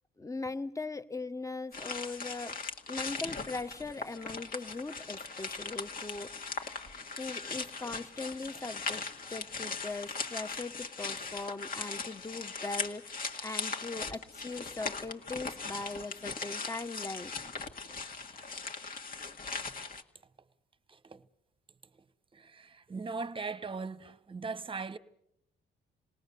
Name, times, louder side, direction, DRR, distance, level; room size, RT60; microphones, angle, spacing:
voice 1, 0.2-2.6 2.9-6.6 7.2-17.3, left 3 dB, 15° left, 1.1 m, -40 dB
sound 1, 1.7-20.0, left 4 dB, 45° left, 2.0 m, -39 dB
voice 2, 20.9-21.2 22.3-25.0, right 4 dB, 25° right, 1.0 m, -39 dB
28.0 x 18.5 x 6.8 m
cardioid pair, 90°, 20 cm